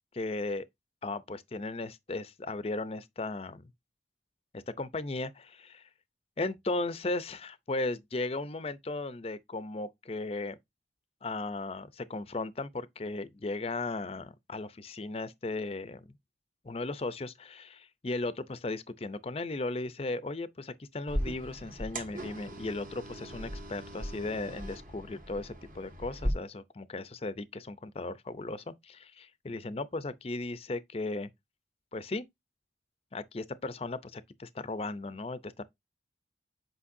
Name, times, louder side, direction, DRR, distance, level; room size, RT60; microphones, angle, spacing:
voice 1, 0.1-0.7 1.0-3.6 4.5-5.9 6.4-10.6 11.2-16.0 16.6-31.3 31.9-32.2 33.1-35.6, left 2 dB, 35° left, 0.5 m, -36 dB
sound 1, 21.1-26.3, equal, 50° right, 1.7 m, -38 dB
8.4 x 5.2 x 2.6 m
head